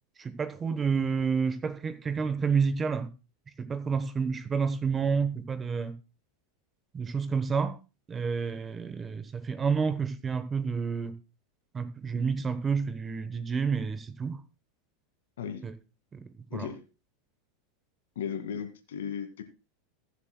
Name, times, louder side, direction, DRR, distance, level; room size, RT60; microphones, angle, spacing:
voice 1, 0.2-3.1 3.6-5.9 6.9-7.8 8.1-11.1 11.7-14.4 15.6-15.7 16.1-16.7, right 5 dB, 20° right, 1.0 m, -29 dB
voice 2, 16.5-16.9 18.2-19.4, left 7 dB, 90° left, 2.1 m, -36 dB
21.5 x 7.5 x 2.2 m
supercardioid pair, 130°, 0 cm